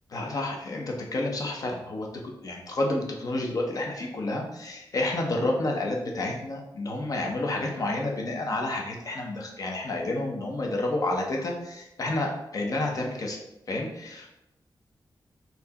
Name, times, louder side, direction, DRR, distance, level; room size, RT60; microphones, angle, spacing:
voice 1, 0.1-2.1 2.4-13.4 13.7-14.3, left 2 dB, 50° left, 0 dB, 0.8 m, -30 dB
4.5 x 2.8 x 4.1 m, 0.88 s
wide cardioid pair, 180°, 8 cm